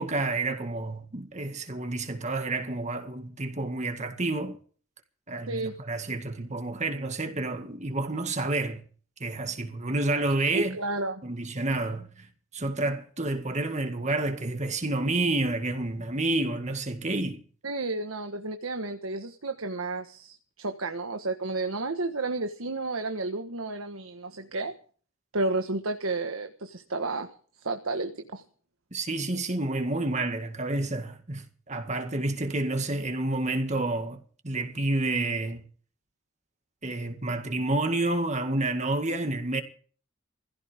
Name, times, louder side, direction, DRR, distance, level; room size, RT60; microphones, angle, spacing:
voice 1, 0.0-4.6 5.3-8.8 9.2-10.8 11.2-12.3 12.5-17.4 28.9-35.6 36.8-39.6, right 2 dB, 35° right, 2.0 m, -29 dB
voice 2, 10.5-11.2 17.6-24.8 25.3-27.3 27.6-28.4, right 2 dB, 85° right, 1.5 m, -31 dB
21.5 x 16.0 x 3.6 m
head